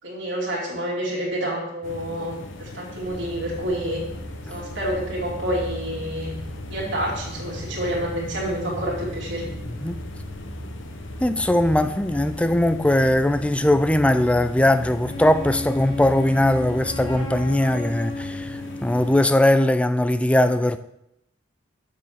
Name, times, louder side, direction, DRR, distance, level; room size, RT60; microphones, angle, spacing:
voice 1, 0.0-4.0 4.5-6.3 6.7-9.5, equal, 60° right, 2.6 m, -28 dB
sound 1, 1.8-19.3, left 2 dB, 60° left, 0.9 m, -39 dB
sound 2, 3.0-17.6, right 1 dB, 15° right, 1.1 m, -38 dB
voice 2, 11.2-20.8, left 1 dB, 5° left, 0.3 m, -20 dB
Wind instrument woodwind instrument, 15.1-19.4, left 2 dB, 80° left, 2.2 m, -34 dB
7.5 x 6.8 x 5.8 m
head